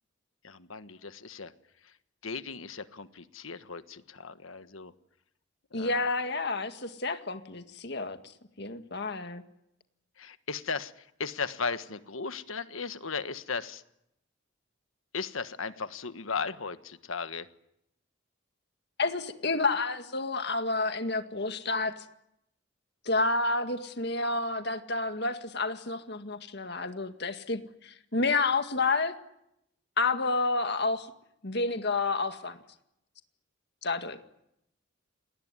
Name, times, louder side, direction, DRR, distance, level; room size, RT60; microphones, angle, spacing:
voice 1, 0.4-1.5 2.2-4.9 5.8-6.1 10.2-10.9 11.2-13.8 15.1-17.5, left 5 dB, 80° left, 11 dB, 1.5 m, -36 dB
voice 2, 5.7-8.2 8.6-9.4 19.0-21.9 23.1-29.2 30.0-31.1 31.4-32.6 33.8-34.2, left 3 dB, 50° left, 8 dB, 1.9 m, -30 dB
28.5 x 20.0 x 9.8 m, 0.81 s
head